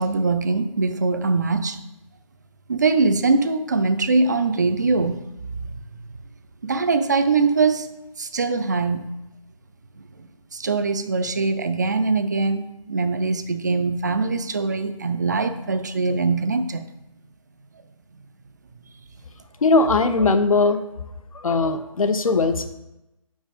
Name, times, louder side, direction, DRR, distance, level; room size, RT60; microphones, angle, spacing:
voice 1, 0.0-1.8 2.7-5.2 5.5-5.8 6.6-7.9 8.2-9.1 10.2-10.3 10.5-16.8, right 3 dB, 30° right, 9 dB, 0.4 m, -22 dB
voice 2, 19.6-20.8 21.3-22.7, left 3 dB, 70° left, 9 dB, 0.7 m, -19 dB
5.3 x 5.0 x 5.1 m, 0.95 s
figure-of-eight pair, 160°, 18 cm